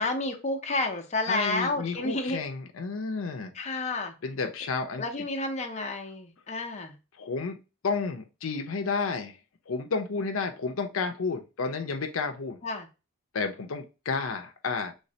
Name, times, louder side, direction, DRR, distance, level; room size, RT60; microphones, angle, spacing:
voice 1, 0.0-2.4 3.6-4.1 5.0-7.0 12.6-12.9, left 2 dB, 35° left, 3 dB, 0.6 m, -30 dB
voice 2, 1.3-3.5 4.2-5.0 7.2-7.6 7.8-9.4 9.7-12.6 13.3-14.9, left 4 dB, 75° left, 6 dB, 0.6 m, -31 dB
3.2 x 3.2 x 2.7 m, 0.29 s
head